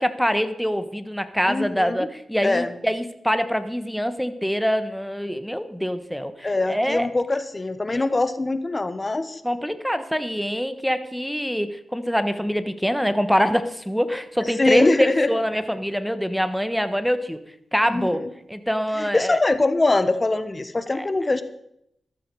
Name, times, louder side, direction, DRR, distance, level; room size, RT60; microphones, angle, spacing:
voice 1, 0.0-7.1 7.9-8.1 9.4-17.4 17.7-18.2 18.5-19.4 20.9-21.1, equal, ahead, 10 dB, 1.3 m, -24 dB
voice 2, 1.5-2.1 2.4-2.7 6.4-9.4 14.6-15.3 17.9-18.2 19.0-21.4, left 2 dB, 35° left, 12 dB, 1.3 m, -22 dB
13.5 x 12.0 x 4.8 m, 0.77 s
cardioid pair, 50°, 0 cm